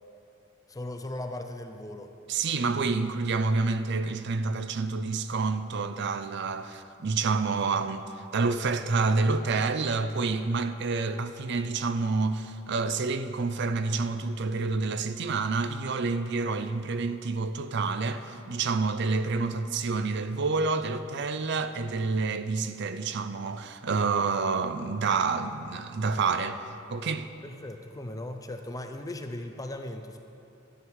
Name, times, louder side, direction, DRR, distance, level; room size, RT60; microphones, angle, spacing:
voice 1, 0.7-2.1 27.4-30.2, left 1 dB, 20° left, 0.5 m, -38 dB
voice 2, 2.3-26.6 26.9-27.3, right 4 dB, 60° right, 0.5 m, -28 dB
12.5 x 9.1 x 4.7 m
head